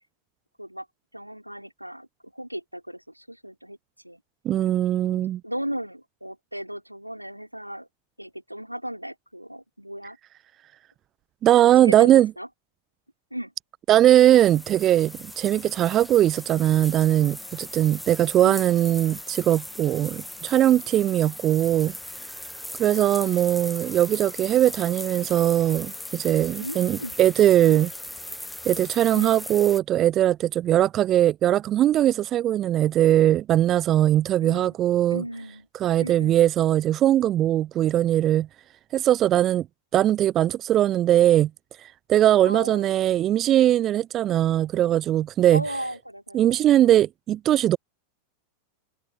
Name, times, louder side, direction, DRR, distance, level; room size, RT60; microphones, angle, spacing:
voice 1, 1.1-3.8 4.0-4.2 5.1-7.9 8.2-10.2 11.6-12.5 13.3-13.5 18.4-18.6 22.9-23.4 26.6-27.1 27.6-27.8 29.1-29.4 34.4-34.8 35.1-35.7 36.0-36.5 42.4-42.9 45.5-47.0, equal, 90° right, 3.2 m, -36 dB
voice 2, 4.4-5.4 11.4-12.3 13.9-21.9 22.8-27.9 28.7-35.2 35.8-38.5 38.9-39.7 39.9-41.5 41.8-45.6 46.3-47.8, right 12 dB, 30° right, 0.5 m, -20 dB
sound 1, 14.1-29.8, left 1 dB, 5° left, 0.8 m, -38 dB
figure-of-eight pair, 90°, 0 cm